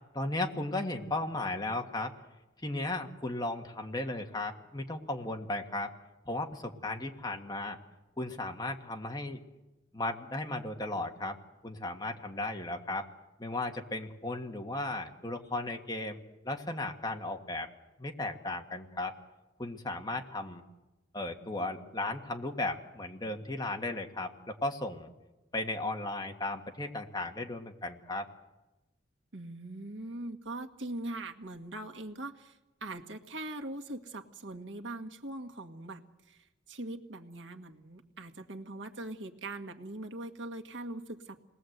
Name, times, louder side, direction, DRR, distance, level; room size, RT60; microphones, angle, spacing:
voice 1, 0.1-2.1 2.6-5.9 6.2-7.8 8.2-9.4 9.9-11.4 11.6-13.1 13.4-16.2 16.4-17.7 18.0-19.1 19.6-20.6 21.1-25.1 25.5-28.3, left 2 dB, 20° left, 4 dB, 1.7 m, -35 dB
voice 2, 29.3-41.4, right 2 dB, 80° right, 4 dB, 1.7 m, -41 dB
28.5 x 20.0 x 8.0 m, 1.1 s
head